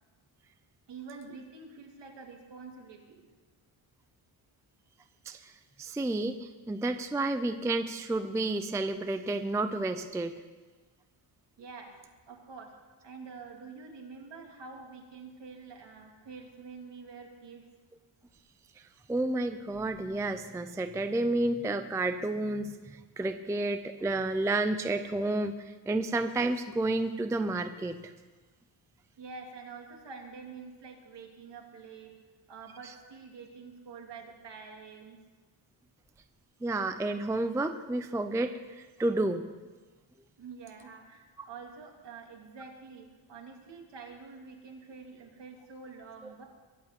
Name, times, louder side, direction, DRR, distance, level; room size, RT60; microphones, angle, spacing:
voice 1, 0.9-3.3 11.6-11.9 12.3-12.7 13.0-17.6 29.2-32.1 32.5-35.2 40.4-46.4, right 4 dB, 60° right, 1 dB, 2.8 m, -47 dB
voice 2, 5.8-10.3 19.1-28.0 36.6-39.4, right 2 dB, 5° right, 9 dB, 0.4 m, -31 dB
22.5 x 8.2 x 6.9 m, 1.3 s
wide cardioid pair, 170°, 48 cm